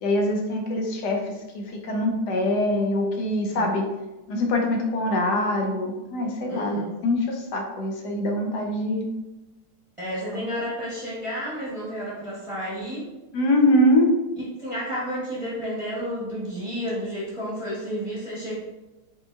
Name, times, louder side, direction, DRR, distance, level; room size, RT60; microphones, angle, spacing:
voice 1, 0.0-3.9 4.3-6.8 7.0-9.1 13.3-14.1, left 1 dB, 75° left, 1 dB, 1.2 m, -23 dB
voice 2, 6.5-7.0 10.0-13.1 14.6-18.6, equal, 20° right, -7 dB, 1.0 m, -31 dB
5.1 x 3.9 x 2.4 m, 1.0 s
omnidirectional pair, 1.9 m